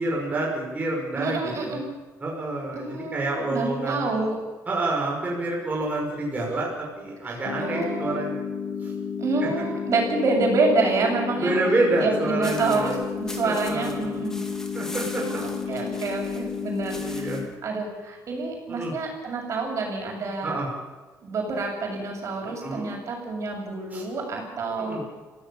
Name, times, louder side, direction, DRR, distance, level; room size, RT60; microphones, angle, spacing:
voice 1, 0.0-1.8 2.2-4.1 4.7-8.4 8.8-8.9 11.4-13.0 13.4-14.2 14.7-15.4 15.7-15.9 16.9-17.4 18.7-18.9 20.4-20.7 22.6-23.0 23.9-24.0 24.8-25.0, right 2 dB, 25° right, -2 dB, 5.9 m, -28 dB
voice 2, 1.1-1.8 2.7-4.4 7.2-8.2 9.2-11.6 12.0-14.4 15.2-20.6 21.2-25.1, right 3 dB, 55° right, 1 dB, 7.5 m, -28 dB
sound 1, 7.4-17.5, left 6 dB, 90° left, 3.0 m, -32 dB
sound 2, 12.4-17.5, left 1 dB, 10° left, 3.2 m, -42 dB
24.5 x 16.5 x 7.3 m, 1.4 s
cardioid pair, 105°, 6 cm